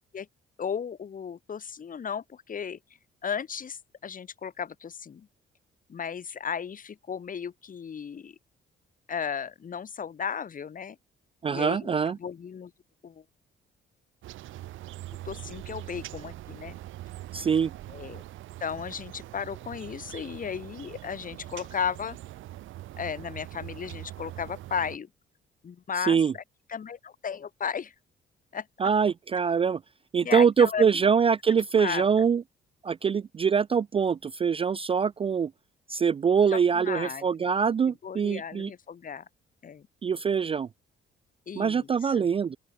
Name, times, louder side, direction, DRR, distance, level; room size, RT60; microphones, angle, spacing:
voice 1, 0.6-2.8 3.2-5.3 5.9-8.3 9.1-11.0 11.5-12.7 13.0-13.2 15.2-16.8 17.9-18.2 18.6-22.2 23.0-25.1 25.6-26.4 26.7-27.9 28.5-28.7 30.2-31.0 31.8-32.0 36.5-37.2 38.0-39.2 39.6-39.9 41.5-42.3, left 7 dB, 45° left, 1.6 m, -35 dB
voice 2, 11.4-12.2 17.3-17.7 26.1-26.3 28.8-29.8 30.1-32.4 32.8-35.5 35.9-38.7 40.0-40.7 41.6-42.6, right 6 dB, 30° right, 0.3 m, -24 dB
sound 1, 14.2-25.0, right 15 dB, 80° right, 1.1 m, -42 dB
open air
cardioid pair, 90°, 20 cm